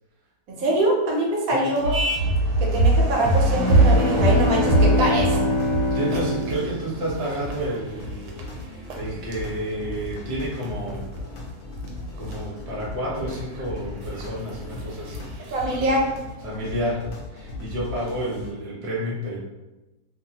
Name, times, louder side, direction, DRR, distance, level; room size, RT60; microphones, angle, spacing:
voice 1, 0.5-2.0 2.6-5.4 15.5-16.1, right 1 dB, 65° right, -2 dB, 1.0 m, -23 dB
sound 1, 1.7-18.5, left 2 dB, 70° left, 0.6 m, -37 dB
sound 2, 1.8-6.8 7.2-7.8 8.0-8.4 8.9-9.0 9.3-9.4 10.6-11.2 11.9-12.0 12.2-12.3 13.3-13.4 13.6-13.7 14.1-14.2 15.1-15.2 15.5-15.8, right 1 dB, 85° right, 1.2 m, -21 dB
sound 3, 3.4-7.5, left 1 dB, 85° left, 1.2 m, -25 dB
voice 2, 5.9-11.1 12.2-15.3 16.4-19.4, right 1 dB, 40° right, -6 dB, 0.4 m, -30 dB
2.6 x 2.5 x 2.7 m, 1.0 s
omnidirectional pair, 1.8 m